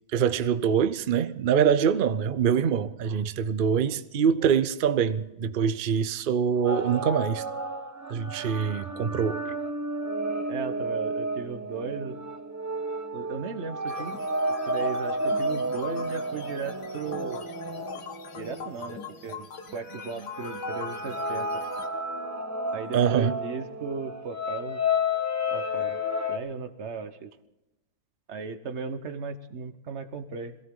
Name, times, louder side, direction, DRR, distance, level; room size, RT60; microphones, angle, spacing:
voice 1, 0.1-7.4 8.1-9.5 22.9-23.4, right 7 dB, 75° right, 0.5 m, -24 dB
sound 1, 6.6-19.2 19.8-26.4, left 1 dB, 15° right, 0.9 m, -31 dB
voice 2, 10.5-12.2 13.1-14.2 14.7-17.5 18.3-21.6 22.7-24.8 25.5-26.0 26.3-27.3 28.3-30.6, right 5 dB, 50° right, 1.2 m, -36 dB
sound 2, 13.9-21.9, left 6 dB, 85° left, 1.9 m, -43 dB
22.5 x 16.0 x 3.8 m
omnidirectional pair, 1.7 m